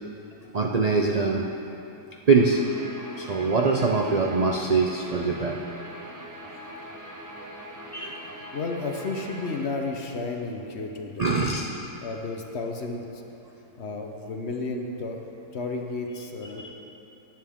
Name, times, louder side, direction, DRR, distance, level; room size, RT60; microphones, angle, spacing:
voice 1, 0.5-1.4 2.3-2.6 3.2-5.6 7.9-8.2 11.2-11.7 16.5-16.7, right 4 dB, 85° right, 0 dB, 0.3 m, -23 dB
Guitar, 2.3-9.7, equal, 20° right, 0.6 m, -42 dB
voice 2, 8.5-11.7 12.0-13.2 13.8-16.7, left 3 dB, 50° left, 2 dB, 1.1 m, -33 dB
16.0 x 9.4 x 3.6 m, 2.9 s
omnidirectional pair, 1.6 m